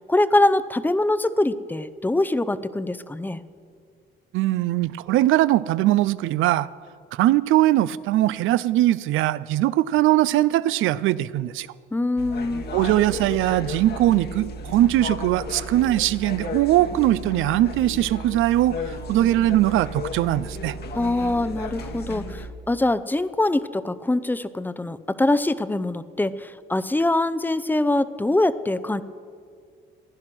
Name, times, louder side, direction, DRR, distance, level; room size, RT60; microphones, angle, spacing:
voice 1, 0.1-3.4 11.9-12.6 20.9-29.0, left 2 dB, 10° left, 15 dB, 0.5 m, -23 dB
voice 2, 4.3-6.7 7.1-11.7 12.7-18.8 19.1-20.8, right 14 dB, 85° right, 18 dB, 0.4 m, -21 dB
sound 1, 12.2-22.5, left 1 dB, 55° left, 1.3 m, -34 dB
15.5 x 11.0 x 6.1 m, 2.2 s
cardioid pair, 90°, 20 cm